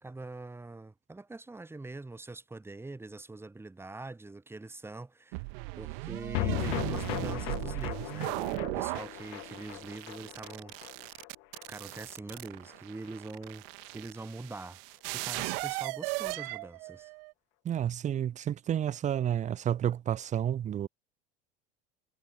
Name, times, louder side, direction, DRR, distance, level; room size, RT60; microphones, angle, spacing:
voice 1, 0.0-5.4 5.8-10.8 11.7-13.7 13.9-14.8 15.1-17.1, right 2 dB, 10° right, 1.0 m, -43 dB
sound 1, 5.3-17.3, right 31 dB, 65° right, 0.8 m, -37 dB
sound 2, 6.3-12.8 13.0-13.1 13.4-13.5, left 36 dB, 60° left, 0.8 m, -38 dB
voice 2, 17.6-20.9, right 10 dB, 25° right, 0.5 m, -30 dB
hypercardioid pair, 85°, 31 cm